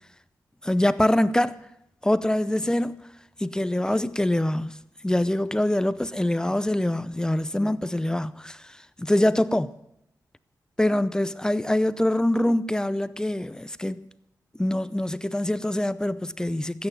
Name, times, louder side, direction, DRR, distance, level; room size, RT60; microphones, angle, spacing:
voice 1, 0.6-1.6 2.0-3.0 3.4-9.7 10.8-14.0 14.5-16.9, left 1 dB, 10° left, 0.6 m, -24 dB
13.5 x 9.2 x 9.5 m
cardioid pair, 80°, 7 cm